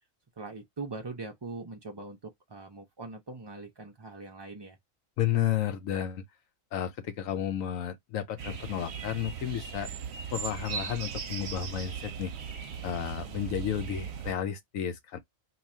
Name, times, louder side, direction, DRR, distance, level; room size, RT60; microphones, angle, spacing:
voice 1, 0.4-4.8, right 3 dB, 45° right, 0.3 m, -42 dB
voice 2, 5.2-6.2 6.7-9.9 10.3-12.3 12.8-15.2, left 10 dB, 85° left, 1.1 m, -32 dB
sound 1, 8.4-14.3, right 7 dB, 60° right, 0.8 m, -38 dB
3.0 x 2.3 x 4.2 m
omnidirectional pair, 1.4 m